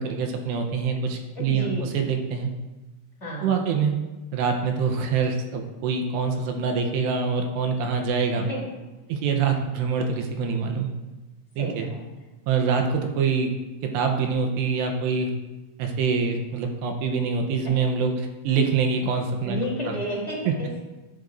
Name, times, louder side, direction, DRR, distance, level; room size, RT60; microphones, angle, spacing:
voice 1, 0.0-2.5 3.4-4.0 4.3-8.5 9.1-10.9 11.6-11.9 12.5-13.5 13.8-15.3 15.8-19.6 19.9-20.0 20.5-20.6, right 5 dB, 80° right, 4 dB, 3.0 m, -25 dB
voice 2, 1.3-1.8 3.2-3.5 8.5-8.6 11.6-12.0 19.4-20.8, equal, 15° left, -7 dB, 3.2 m, -31 dB
12.0 x 11.5 x 2.6 m, 1.1 s
omnidirectional pair, 5.1 m